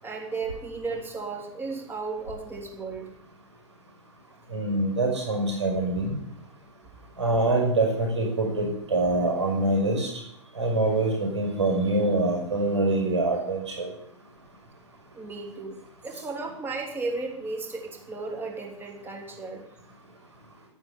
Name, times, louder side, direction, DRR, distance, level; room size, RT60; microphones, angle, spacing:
voice 1, 0.0-3.1 15.1-15.8 16.0-19.7, right 3 dB, 15° right, 0 dB, 3.3 m, -34 dB
voice 2, 4.5-6.2 7.2-10.1 10.6-13.9, right 2 dB, 70° right, 0 dB, 6.0 m, -25 dB
12.5 x 9.5 x 7.1 m, 0.75 s
figure-of-eight pair, 105°, 15 cm